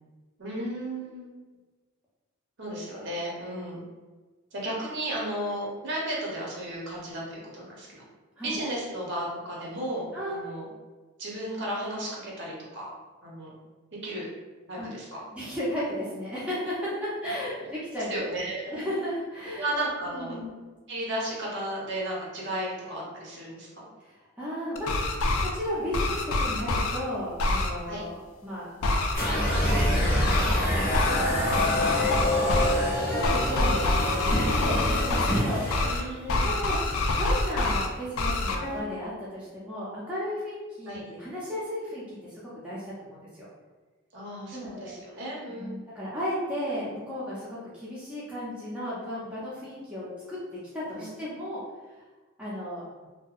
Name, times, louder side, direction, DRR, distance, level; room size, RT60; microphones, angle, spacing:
voice 1, 0.4-1.3 2.6-3.8 4.5-8.0 8.4-10.7 11.2-12.9 13.2-13.5 14.0-14.3 14.7-15.2 17.6-17.7 18.1-18.7 19.6-20.4 20.9-23.8 27.9-28.0 32.3-32.7 35.8-36.5 40.8-41.0 44.1-45.8 50.9-51.1, right 1 dB, 55° right, -4 dB, 0.7 m, -34 dB
voice 2, 15.3-18.2 18.7-19.7 20.1-20.6 24.0-25.1 25.5-28.7 29.3-32.6 33.1-43.5 44.5-44.9 45.5-50.4 50.7-51.6 52.4-52.8, equal, 5° right, -9 dB, 0.5 m, -34 dB
sound 1, 24.8-25.5 25.9-27.0 27.4-27.7 28.8-29.1 30.3-30.6 30.9-31.2 31.5-32.8 33.2-35.4 35.7-36.0 36.3-37.9 38.2-38.6, left 2 dB, 80° left, 0.3 m, -26 dB
sound 2, 29.1-35.9, left 1 dB, 40° left, 0.7 m, -26 dB
sound 3, 33.1-34.3 36.3-36.4 38.6-38.8, left 1 dB, 85° right, 0.9 m, -38 dB
2.6 x 2.2 x 2.4 m, 1.3 s
head